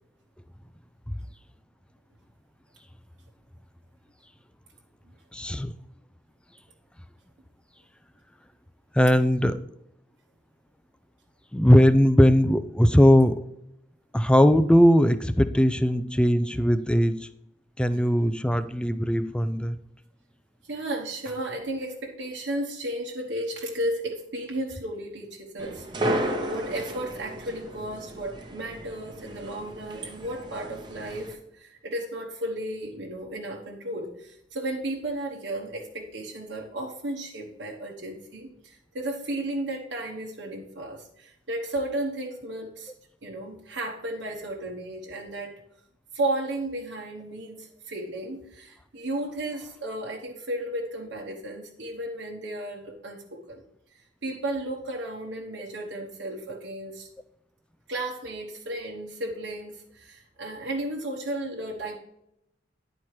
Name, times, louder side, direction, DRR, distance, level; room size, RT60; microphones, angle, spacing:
voice 1, 5.3-5.8 8.9-9.6 11.5-13.4 14.1-17.3 17.8-19.8, equal, 5° left, 12 dB, 0.4 m, -19 dB
voice 2, 20.7-42.9 43.2-45.6 46.1-53.6 54.2-57.1 57.9-62.0, right 1 dB, 70° right, -1 dB, 1.1 m, -34 dB
sound 1, 25.6-31.3, right 1 dB, 25° right, 1.0 m, -33 dB
10.0 x 4.4 x 4.7 m, 0.80 s
head